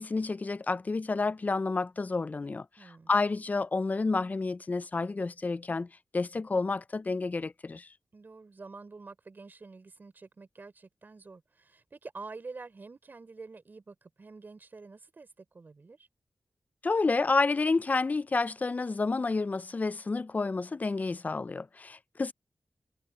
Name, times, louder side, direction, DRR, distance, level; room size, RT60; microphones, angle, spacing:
voice 1, 0.0-5.9 6.1-7.9 16.8-22.3, left 3 dB, 45° left, 0.5 m, -30 dB
voice 2, 2.8-3.1 8.1-16.1, right 3 dB, 55° right, 4.2 m, -47 dB
cardioid pair, 50°, 4 cm